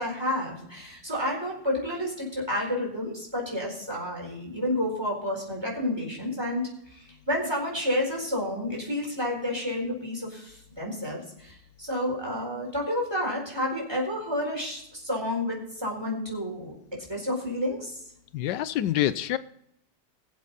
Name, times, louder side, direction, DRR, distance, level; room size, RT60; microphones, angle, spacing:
voice 1, 0.0-6.6 6.9-18.0, left 1 dB, 15° right, -2 dB, 4.4 m, -30 dB
voice 2, 18.3-19.4, left 12 dB, 85° left, 13 dB, 1.3 m, -26 dB
22.0 x 7.5 x 4.1 m, 0.72 s
omnidirectional pair, 1.8 m